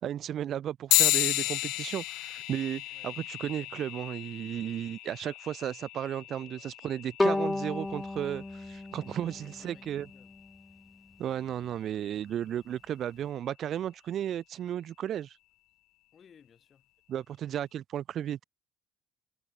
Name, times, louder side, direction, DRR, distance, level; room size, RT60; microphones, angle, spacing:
voice 1, 0.0-10.1 11.2-15.4 17.1-18.4, right 10 dB, 55° right, 2.0 m, -34 dB
sound 1, 0.9-10.7, left 19 dB, 85° left, 0.5 m, -33 dB
voice 2, 6.3-6.7 9.0-10.4 16.1-16.9, left 7 dB, 35° left, 7.9 m, -60 dB
Bowed string instrument, 7.2-10.3, left 2 dB, 10° left, 0.7 m, -32 dB
cardioid pair, 130°, 0 cm